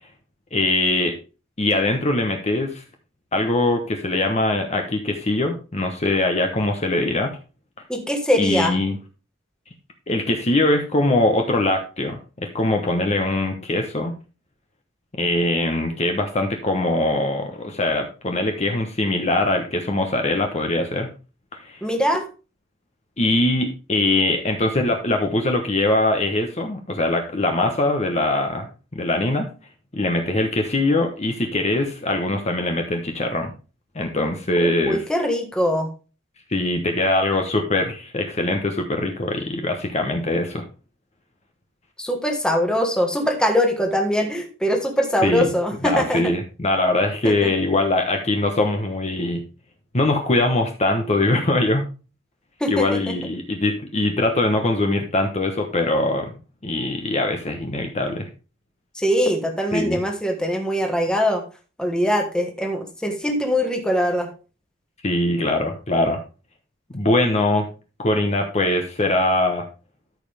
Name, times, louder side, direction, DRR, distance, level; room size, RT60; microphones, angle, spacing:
voice 1, 0.5-1.1 1.6-2.8 3.3-7.3 8.4-9.0 10.1-14.2 15.2-21.1 21.5-21.8 23.2-28.7 28.9-29.5 29.9-33.5 33.9-35.0 36.5-40.6 45.2-45.5 45.8-49.4 49.9-51.9 52.7-56.3 56.6-58.3 59.7-60.0 65.0-66.2 66.9-67.7 68.0-69.7, left 2 dB, 35° left, 4 dB, 1.0 m, -22 dB
voice 2, 7.9-8.8 21.8-22.2 34.6-35.9 42.0-46.3 47.2-47.5 52.6-53.2 58.9-61.4 61.8-64.3, equal, 5° left, 3 dB, 1.5 m, -22 dB
13.0 x 5.4 x 3.4 m, 0.33 s
head